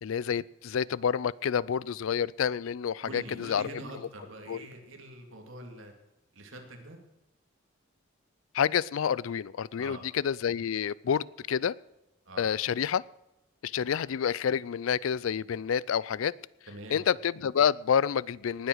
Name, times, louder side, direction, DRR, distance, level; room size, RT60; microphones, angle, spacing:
voice 1, 0.0-3.8 4.5-4.7 8.5-11.8 12.4-13.0 13.6-16.4 16.9-18.7, left 7 dB, 90° left, 23 dB, 0.4 m, -28 dB
voice 2, 3.0-5.9 6.3-7.0 9.8-10.0 12.3-12.5 16.7-17.0, right 1 dB, 75° right, 3 dB, 2.6 m, -44 dB
19.0 x 8.0 x 6.4 m, 0.92 s
head